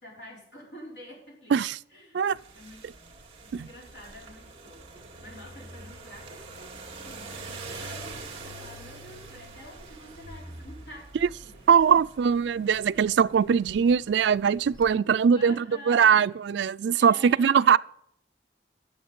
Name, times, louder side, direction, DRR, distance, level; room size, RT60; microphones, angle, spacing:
voice 1, 0.0-1.6 1.9-2.8 3.4-11.7 15.3-16.3 17.0-17.7, equal, 70° left, 5.0 m, -48 dB
sound 1, 2.3-14.9, right 2 dB, 30° right, 2.1 m, -45 dB
voice 2, 11.7-17.8, right 7 dB, 75° right, 0.3 m, -21 dB
11.0 x 7.2 x 5.3 m
head